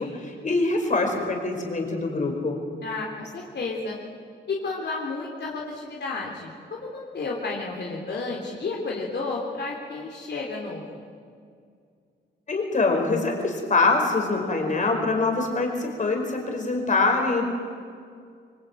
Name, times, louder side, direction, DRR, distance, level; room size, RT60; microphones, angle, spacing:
voice 1, 0.0-2.6 12.5-17.4, left 3 dB, 40° left, 3 dB, 4.9 m, -24 dB
voice 2, 2.8-4.0 4.5-11.0, left 3 dB, 65° left, -2 dB, 3.5 m, -32 dB
25.5 x 25.0 x 9.2 m, 2.2 s
wide cardioid pair, 165°, 19 cm